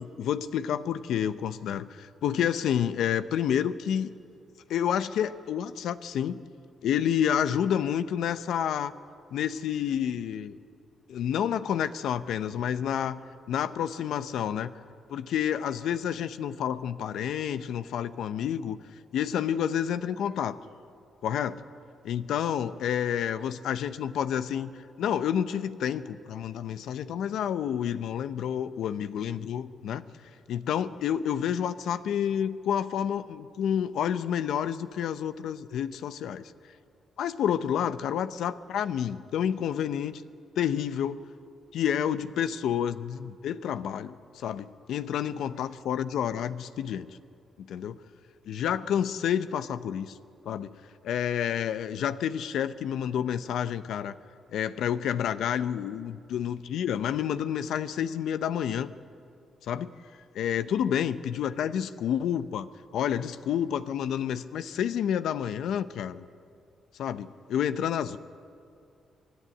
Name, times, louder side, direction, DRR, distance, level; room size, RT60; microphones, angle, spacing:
voice 1, 0.0-4.1 4.7-6.4 6.8-8.9 9.3-10.6 11.1-13.2 13.5-14.7 15.1-18.8 19.1-20.6 21.2-21.6 22.0-30.0 30.5-36.5 37.2-40.2 40.6-41.2 41.7-47.1 47.6-48.0 48.5-50.2 50.5-50.7 51.0-54.2 54.5-58.9 59.7-59.9 60.3-62.7 62.9-66.2 67.0-68.2, left 9 dB, 80° left, 13 dB, 0.6 m, -29 dB
24.0 x 11.0 x 9.9 m, 2.4 s
cardioid pair, 85°, 0 cm